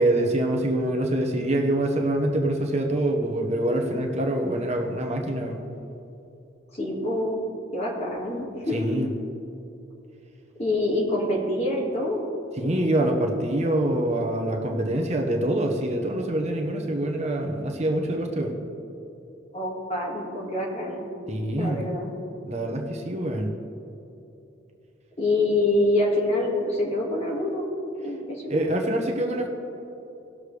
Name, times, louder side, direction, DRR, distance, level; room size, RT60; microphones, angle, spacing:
voice 1, 0.0-5.6 8.7-9.1 12.6-18.5 21.3-21.8 22.4-23.5 28.5-29.5, right 1 dB, 35° right, 1 dB, 0.9 m, -25 dB
voice 2, 6.7-7.4 7.7-8.8 10.6-12.3 19.5-21.1 21.6-22.1 25.2-28.6, left 1 dB, 35° left, -2 dB, 2.1 m, -26 dB
18.5 x 6.6 x 3.3 m, 2.9 s
head